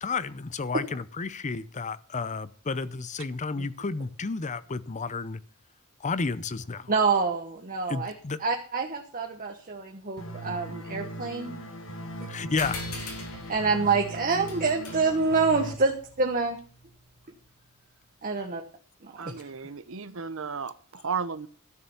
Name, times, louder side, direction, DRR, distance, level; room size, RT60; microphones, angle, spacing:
voice 1, 0.0-5.4 6.0-6.9 7.9-8.4 12.3-12.8 19.2-19.3, left 4 dB, 35° left, 16 dB, 0.6 m, -31 dB
voice 2, 6.9-8.1 8.4-11.6 13.5-16.6 18.2-18.6 19.0-19.3, right 4 dB, 40° right, 3 dB, 1.2 m, -27 dB
sound 1, 10.2-15.7, right 1 dB, 65° left, 1.6 m, -39 dB
sound 2, 12.6-17.5, left 2 dB, 80° left, 3.2 m, -43 dB
voice 3, 19.2-21.5, right 5 dB, 65° right, 13 dB, 0.8 m, -34 dB
12.5 x 6.8 x 7.0 m, 0.43 s
head